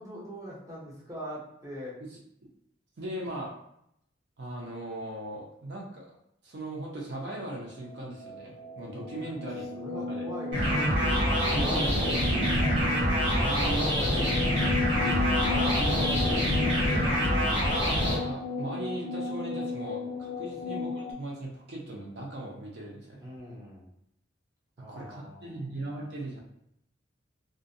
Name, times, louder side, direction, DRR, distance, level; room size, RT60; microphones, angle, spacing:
voice 1, 0.0-2.0 9.2-9.3 9.8-11.1 11.5-11.9 12.5-12.8 23.2-23.9 24.8-25.6, equal, 15° right, -5 dB, 0.6 m, -42 dB
voice 2, 3.0-3.5 4.4-6.1 6.4-10.3 11.5-12.0 13.3-14.4 14.9-17.1 18.1-23.3 24.9-26.4, right 1 dB, 60° right, -2 dB, 0.6 m, -38 dB
sound 1, 7.7-21.1, left 4 dB, 45° left, 0.3 m, -34 dB
sound 2, 10.5-18.1, equal, 90° right, 1.3 m, -26 dB
2.4 x 2.1 x 2.6 m, 0.76 s
head